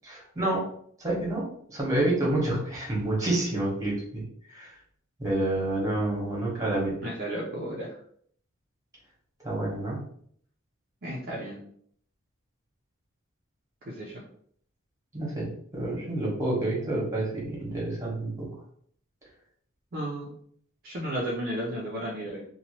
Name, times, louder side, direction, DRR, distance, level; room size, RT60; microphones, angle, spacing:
voice 1, 0.1-0.6 1.0-4.2 4.5-4.7 5.2-7.0 9.4-10.0 15.1-18.5, right 1 dB, 15° right, -5 dB, 1.2 m, -28 dB
voice 2, 7.0-8.0 11.0-11.6 13.9-14.2 19.9-20.3 20.8-22.5, right 1 dB, 45° right, -4 dB, 0.6 m, -33 dB
2.8 x 2.2 x 2.9 m, 0.63 s
head